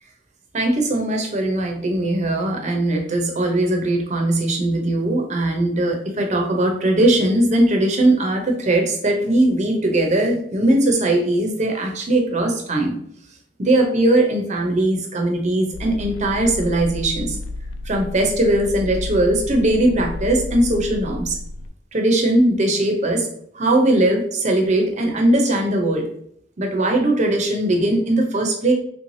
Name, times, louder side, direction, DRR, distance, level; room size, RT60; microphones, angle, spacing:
voice 1, 0.5-13.0 13.6-17.4 17.8-21.4 21.9-23.3 23.5-26.1 26.6-28.7, right 1 dB, 40° right, 2 dB, 0.7 m, -19 dB
sound 1, 15.7-21.7, left 2 dB, 70° left, 0.3 m, -32 dB
3.3 x 3.2 x 2.6 m, 0.68 s
head